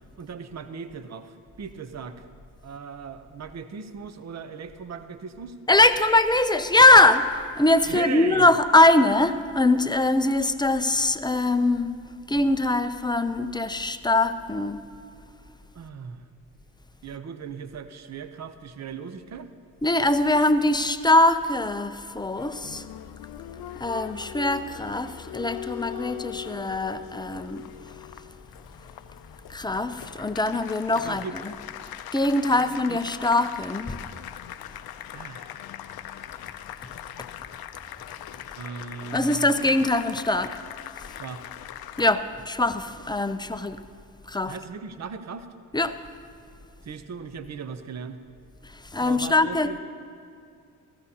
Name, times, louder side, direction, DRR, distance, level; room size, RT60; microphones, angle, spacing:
voice 1, 0.2-2.3 2.6-5.6 7.8-8.5 15.7-16.2 17.0-19.5 30.9-31.3 32.6-33.0 35.1-35.7 38.6-39.5 41.2-41.5 44.5-45.5 46.8-48.2 49.0-49.8, right 6 dB, 40° right, 11 dB, 0.8 m, -38 dB
voice 2, 5.7-14.8 19.8-22.9 23.8-27.7 29.5-31.3 32.1-34.0 39.1-40.6 42.0-43.8 44.2-44.5 45.7-46.0 48.6-49.7, left 2 dB, 10° left, 10 dB, 0.5 m, -22 dB
Applause, 22.1-42.1, left 12 dB, 60° left, 0.6 m, -40 dB
16.0 x 13.5 x 2.8 m, 2.3 s
supercardioid pair, 55°, 41 cm